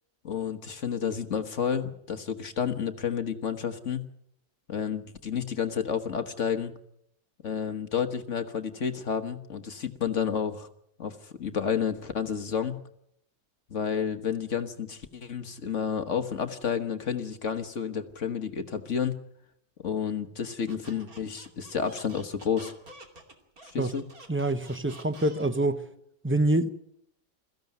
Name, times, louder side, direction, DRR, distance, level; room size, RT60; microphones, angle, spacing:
voice 1, 0.2-4.1 4.7-6.7 7.4-10.7 11.0-12.8 13.7-19.2 19.8-22.7 23.6-24.0, left 7 dB, 50° left, 1.4 m, -30 dB
Squeak, 20.7-25.7, right 2 dB, 55° right, 3.2 m, -49 dB
voice 2, 24.3-25.8 26.2-26.7, right 1 dB, 15° right, 0.5 m, -25 dB
22.0 x 15.0 x 9.3 m
omnidirectional pair, 1.8 m